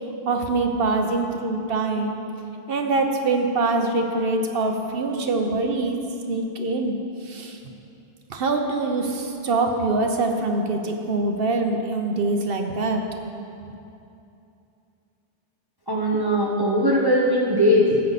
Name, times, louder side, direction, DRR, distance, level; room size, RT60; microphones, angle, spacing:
voice 1, 0.2-2.2 2.7-6.0 6.3-7.0 7.2-7.6 8.3-13.0 13.6-13.7, right 3 dB, 60° right, 4 dB, 1.0 m, -24 dB
voice 2, 15.9-18.0, equal, 20° right, -4 dB, 1.0 m, -20 dB
13.0 x 8.0 x 4.1 m, 2.7 s
omnidirectional pair, 1.1 m